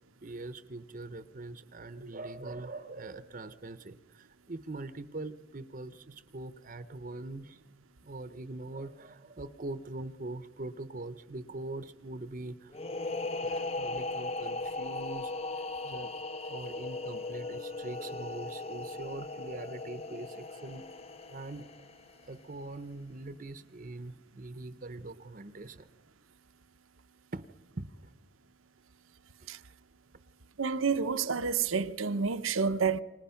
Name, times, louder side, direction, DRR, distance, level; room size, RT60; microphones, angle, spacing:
voice 1, 0.2-7.6 8.0-12.7 13.4-16.1 16.4-20.9 21.3-21.7 22.3-25.9 27.3-27.4 27.8-27.9, right 2 dB, 40° right, 0.8 m, -42 dB
sound 1, 12.7-22.2, left 2 dB, 30° left, 0.7 m, -38 dB
voice 2, 30.6-33.0, right 5 dB, 85° right, 0.9 m, -29 dB
28.5 x 26.0 x 5.8 m
head